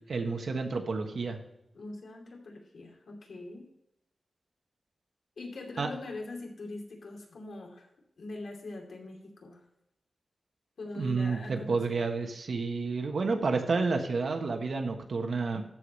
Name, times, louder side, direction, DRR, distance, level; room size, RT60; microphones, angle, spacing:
voice 1, 0.1-1.4 5.8-5.9 11.0-15.6, right 4 dB, 60° right, 4 dB, 1.3 m, -30 dB
voice 2, 1.7-3.7 5.4-7.9 8.2-9.6 10.8-12.1, left 2 dB, 75° left, 0 dB, 2.7 m, -42 dB
13.5 x 4.9 x 5.5 m, 0.85 s
wide cardioid pair, 170°, 0 cm